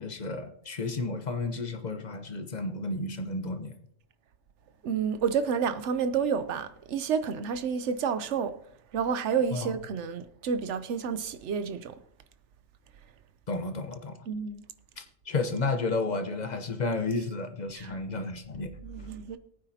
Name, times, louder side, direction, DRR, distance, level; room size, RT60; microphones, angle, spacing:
voice 1, 0.0-3.7 9.5-9.7 13.5-14.2 15.0-18.7, left 3 dB, 40° left, 1.0 m, -32 dB
voice 2, 4.8-8.6 8.9-12.0 14.3-14.6 17.7-18.0 18.8-19.4, right 6 dB, 70° right, 1.0 m, -30 dB
19.0 x 9.0 x 2.8 m
omnidirectional pair, 1.3 m